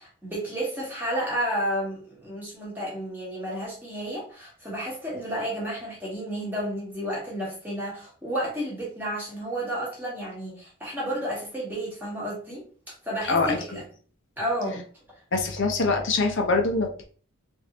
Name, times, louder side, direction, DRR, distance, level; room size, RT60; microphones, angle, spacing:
voice 1, 0.0-12.6 13.0-13.8 14.4-14.8, equal, 10° right, -5 dB, 1.1 m, -31 dB
voice 2, 15.3-17.1, left 3 dB, 55° left, 4 dB, 0.6 m, -24 dB
3.4 x 2.6 x 2.8 m, 0.42 s
head